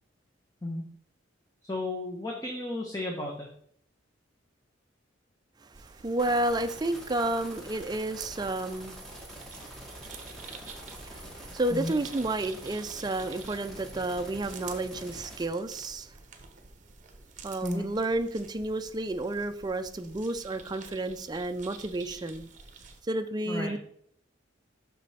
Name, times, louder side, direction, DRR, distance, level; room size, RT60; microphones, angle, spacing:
voice 1, 1.6-3.5 11.7-11.9 17.6-17.9 23.5-23.7, left 2 dB, 20° left, 0.9 m, -33 dB
Wood Ants, 5.7-23.0, right 5 dB, 40° right, 0.8 m, -50 dB
voice 2, 5.8-9.0 11.0-16.1 17.4-22.5 23.1-23.8, right 2 dB, 20° right, 0.4 m, -31 dB
sound 1, 6.2-15.5, right 1 dB, 5° left, 1.3 m, -45 dB
6.2 x 5.2 x 4.2 m
head